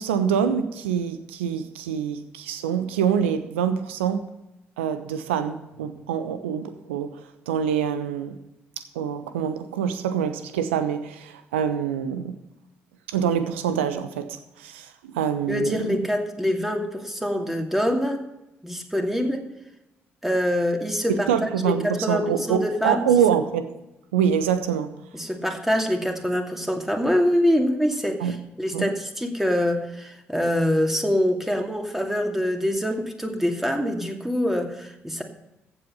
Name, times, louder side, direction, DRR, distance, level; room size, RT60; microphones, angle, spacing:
voice 1, 0.0-4.3 4.8-7.2 7.5-8.4 8.8-12.4 13.1-16.0 21.1-23.8 24.1-24.9 28.2-28.4 28.7-28.9, right 8 dB, 75° right, 11 dB, 0.9 m, -25 dB
voice 2, 15.5-18.2 18.6-19.5 20.2-23.1 25.1-35.2, equal, 5° right, 3 dB, 2.5 m, -25 dB
15.0 x 8.2 x 5.6 m, 0.90 s
figure-of-eight pair, 40°, 6 cm